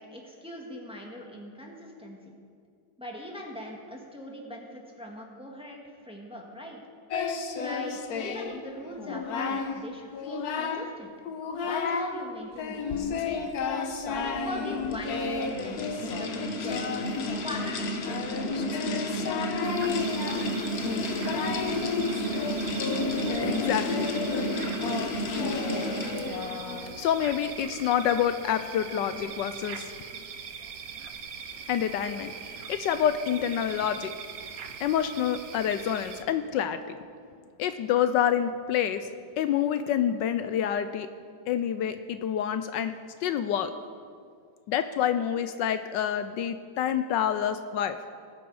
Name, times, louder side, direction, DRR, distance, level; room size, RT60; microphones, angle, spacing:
voice 1, 0.0-2.3 3.0-6.8 7.5-11.1 11.6-13.5 14.1-17.0 17.4-18.7, left 1 dB, 5° right, -1 dB, 1.5 m, -41 dB
Singing, 7.1-8.6 9.0-9.8 10.1-10.9 11.3-12.1 12.6-27.1, left 5 dB, 60° left, 1.3 m, -32 dB
sound 1, 14.3-26.5, equal, 45° left, 1.0 m, -32 dB
sound 2, 19.6-36.2, right 6 dB, 60° right, 1.1 m, -42 dB
voice 2, 23.4-25.3 27.0-29.9 31.7-34.1 34.8-36.8 37.6-39.1 39.4-41.1 41.5-42.9 43.2-43.7 44.7-48.0, left 9 dB, 80° left, 10 dB, 1.2 m, -28 dB
20.0 x 9.2 x 4.8 m, 2.2 s
omnidirectional pair, 2.0 m